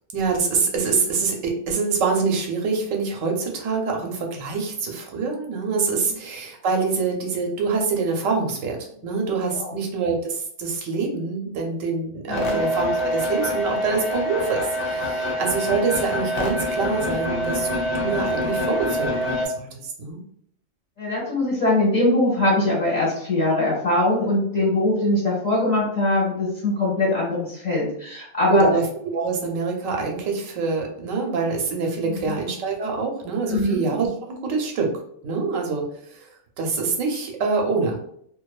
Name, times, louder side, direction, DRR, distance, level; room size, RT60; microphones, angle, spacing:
voice 1, 0.1-17.7 17.9-19.7 20.0-20.2 28.5-28.8 29.1-34.9 35.2-35.9 36.1-36.3 36.6-38.0, right 4 dB, 85° right, 1 dB, 1.0 m, -25 dB
sound 1, 12.3-19.5, equal, 65° left, 0.9 m, -25 dB
voice 2, 12.3-12.6 21.0-28.7 32.1-32.3 33.5-33.8, left 2 dB, 35° left, -5 dB, 0.9 m, -22 dB
2.6 x 2.2 x 2.3 m, 0.68 s
omnidirectional pair, 1.4 m